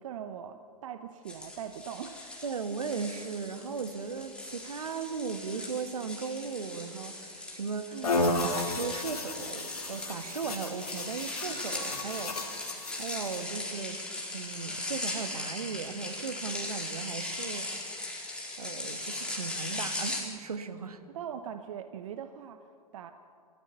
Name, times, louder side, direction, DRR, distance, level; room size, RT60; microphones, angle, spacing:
voice 1, 0.0-2.5 7.9-8.2 21.1-23.1, right 8 dB, 55° right, 8 dB, 1.0 m, -41 dB
sound 1, 1.3-20.2, left 2 dB, 5° left, 4.3 m, -39 dB
voice 2, 2.4-8.0 8.4-14.0 14.3-21.0, right 5 dB, 75° right, 9 dB, 1.5 m, -37 dB
sound 2, 8.0-13.4, left 2 dB, 70° left, 2.3 m, -33 dB
27.0 x 14.0 x 6.8 m, 2.4 s
figure-of-eight pair, 100°, 19 cm